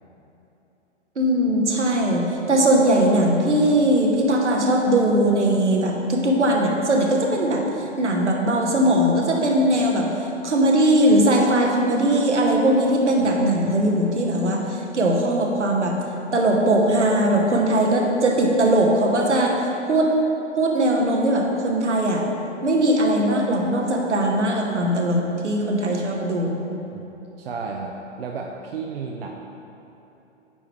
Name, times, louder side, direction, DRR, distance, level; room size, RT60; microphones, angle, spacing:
voice 1, 1.2-16.0 16.3-20.1 20.6-22.2 22.6-26.7, right 1 dB, 75° right, 0 dB, 1.1 m, -20 dB
voice 2, 13.2-13.9 26.9-27.1 27.4-29.3, right 4 dB, 55° right, 1 dB, 0.5 m, -33 dB
8.7 x 4.7 x 3.2 m, 3.0 s
figure-of-eight pair, 115°, 36 cm